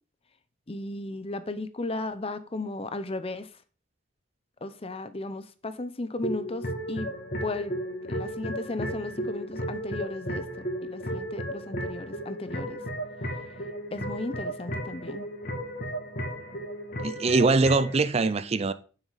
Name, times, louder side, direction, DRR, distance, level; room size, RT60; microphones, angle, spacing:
voice 1, 0.7-3.6 4.6-7.8 8.1-12.8 13.9-15.3, left 2 dB, 30° left, 0.7 m, -35 dB
sound 1, 6.2-18.0, right 1 dB, 45° left, 2.2 m, -34 dB
voice 2, 17.0-18.7, right 3 dB, 30° right, 0.4 m, -23 dB
9.3 x 7.3 x 4.0 m
head